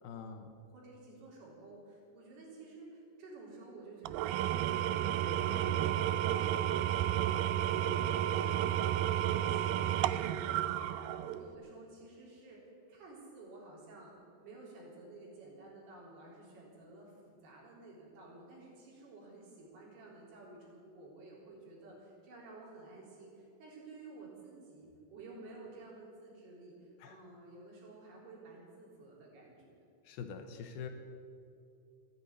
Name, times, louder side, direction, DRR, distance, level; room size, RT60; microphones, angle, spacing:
voice 1, 0.0-0.5 5.5-5.7 27.0-27.2 30.0-30.9, left 6 dB, 75° left, 7 dB, 2.6 m, -45 dB
voice 2, 0.7-14.1 14.4-29.8, right 2 dB, 70° right, -4 dB, 5.7 m, -52 dB
Engine / Tools, 4.1-11.5, right 12 dB, 85° right, 2.1 m, -32 dB
14.5 x 10.0 x 9.6 m, 2.5 s
omnidirectional pair, 4.7 m